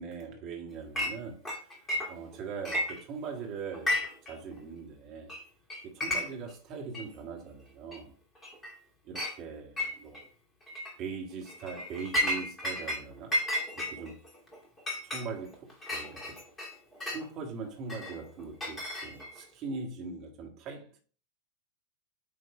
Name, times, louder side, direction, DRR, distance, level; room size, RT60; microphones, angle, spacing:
voice 1, 0.0-1.8 2.1-4.0 4.3-5.3 5.8-8.1 9.0-10.2 11.0-13.4 13.7-14.2 15.0-16.4 17.1-21.0, right 5 dB, 40° right, 1.8 m, -41 dB
Chink clink, 1.0-1.2 1.5-2.3 2.6-3.4 3.7-4.3 4.6-4.7 5.3-5.4 5.7-6.5 6.9-7.0 7.9-8.0 8.4-8.8 9.2-9.4 9.8-10.2 10.7-10.9 11.5-13.0 13.3-17.3 17.9-19.4, left 1 dB, 15° left, 2.4 m, -33 dB
8.9 x 3.1 x 3.4 m
figure-of-eight pair, 90°, 0 cm